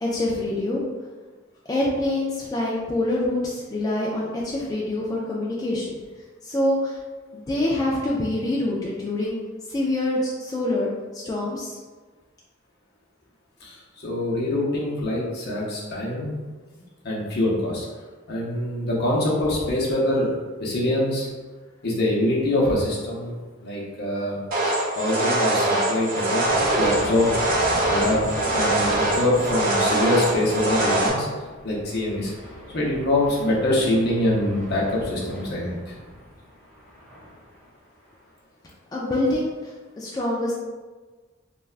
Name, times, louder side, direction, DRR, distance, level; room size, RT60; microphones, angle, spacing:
voice 1, 0.0-0.8 1.7-6.0 6.4-7.0 7.3-9.4 9.7-11.8 38.9-40.5, left 1 dB, 20° left, -4 dB, 0.3 m, -25 dB
voice 2, 13.6-16.4 16.7-17.9 18.3-20.3 20.6-21.3 21.8-23.3 23.6-24.4 25.0-26.4 26.8-27.3 27.9-28.2 28.5-31.3 31.6-32.3 32.7-35.9, left 1 dB, 55° left, -4 dB, 0.7 m, -24 dB
sound 1, 24.5-31.1, right 2 dB, 45° right, 0.5 m, -23 dB
sound 2, 26.5-37.7, equal, 5° right, 0.9 m, -37 dB
3.3 x 2.2 x 2.4 m, 1.3 s
head